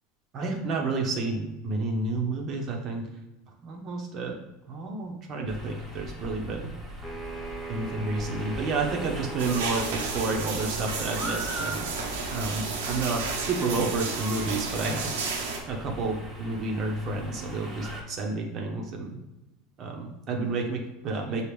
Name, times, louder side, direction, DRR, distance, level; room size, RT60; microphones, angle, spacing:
voice 1, 0.3-3.1 3.6-4.4 4.7-6.7 7.7-11.9 12.3-15.1 15.7-19.2 19.8-21.4, right 3 dB, 45° right, 1 dB, 1.0 m, -30 dB
sound 1, 5.5-18.0, right 1 dB, 15° right, 1.3 m, -40 dB
sound 2, 7.0-10.4, right 3 dB, 10° left, 0.9 m, -39 dB
sound 3, 9.4-15.6, right 4 dB, 80° right, 0.8 m, -32 dB
6.7 x 2.4 x 3.3 m, 1.0 s
hypercardioid pair, 95°, 0 cm